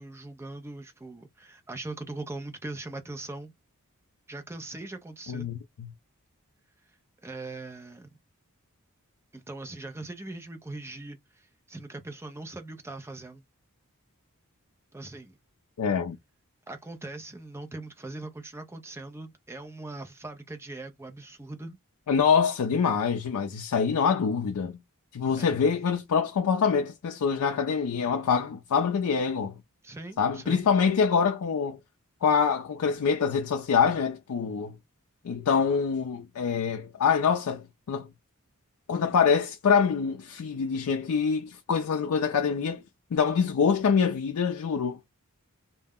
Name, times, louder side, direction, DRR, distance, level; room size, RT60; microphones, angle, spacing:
voice 1, 0.0-3.5 4.3-5.5 7.2-8.1 9.3-13.4 14.9-15.4 16.7-21.8 25.4-25.5 29.8-30.7, right 2 dB, 10° right, 0.5 m, -40 dB
voice 2, 5.3-5.9 15.8-16.2 22.1-24.8 25.1-29.5 30.2-31.8 32.2-34.7 35.2-38.1 38.9-42.8 43.1-45.0, left 6 dB, 85° left, 0.4 m, -25 dB
2.2 x 2.0 x 3.5 m
head